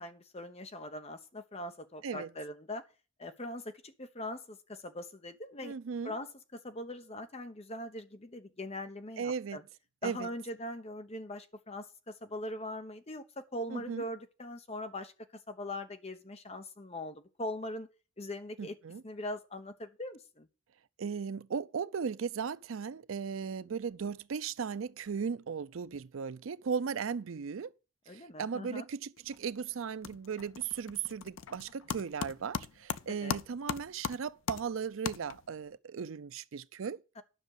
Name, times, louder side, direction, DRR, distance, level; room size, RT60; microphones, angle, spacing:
voice 1, 0.0-2.8 3.2-5.8 6.0-9.6 10.0-15.1 15.5-17.9 18.2-18.8 19.0-20.5 28.1-28.8 33.0-33.4 37.2-37.3, left 1 dB, 30° left, 1.0 m, -41 dB
voice 2, 5.6-6.2 9.2-9.6 10.0-10.3 13.7-14.0 18.6-19.0 21.0-27.7 28.1-37.0, right 6 dB, 75° right, 0.5 m, -37 dB
sound 1, 29.2-29.5 29.8-35.7, left 6 dB, 75° left, 0.5 m, -39 dB
10.0 x 6.3 x 6.6 m
head